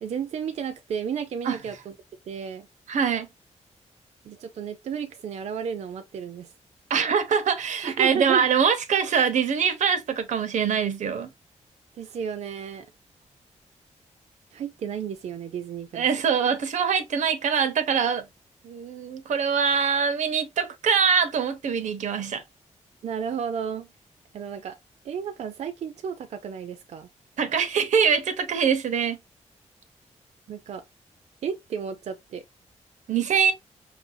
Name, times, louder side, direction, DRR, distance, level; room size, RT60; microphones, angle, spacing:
voice 1, 0.0-1.9 2.3-2.7 4.2-6.5 7.8-8.5 12.0-12.9 14.5-16.1 23.0-23.9 24.3-24.8 25.0-27.1 30.5-30.8 31.4-32.4, right 7 dB, 65° right, 0.5 m, -33 dB
voice 2, 2.9-3.3 6.9-11.3 15.9-18.2 18.6-22.4 27.4-29.2 33.1-33.5, right 6 dB, 90° right, 0.8 m, -23 dB
5.4 x 2.6 x 2.6 m
wide cardioid pair, 180°, 12 cm